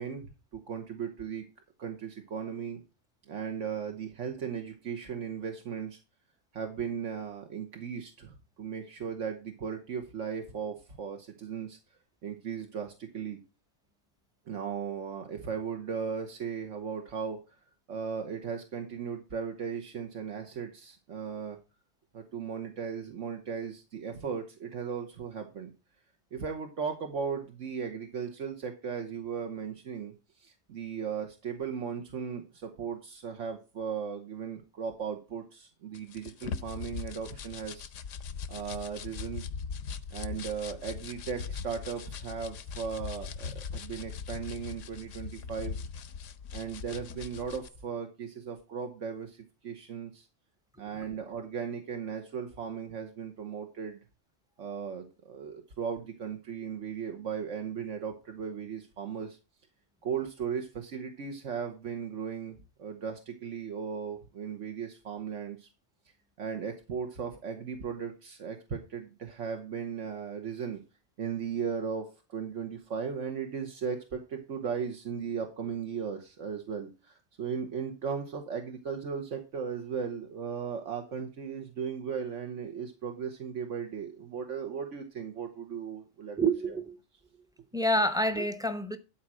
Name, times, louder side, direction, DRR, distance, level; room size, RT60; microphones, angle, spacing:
voice 1, 0.0-1.4 1.8-2.8 3.3-6.0 6.5-11.8 12.2-13.4 14.5-17.4 17.9-21.6 22.1-25.7 26.3-37.9 38.5-39.5 40.1-45.8 46.5-50.2 50.8-54.0 54.6-59.4 60.0-65.7 66.4-70.8 71.2-86.4, right 6 dB, 75° right, 1.5 m, -37 dB
sound 1, 35.9-47.7, left 6 dB, 80° left, 1.1 m, -40 dB
voice 2, 86.4-87.0 87.7-89.0, right 1 dB, 5° right, 0.7 m, -28 dB
12.0 x 4.3 x 6.2 m
omnidirectional pair, 1.3 m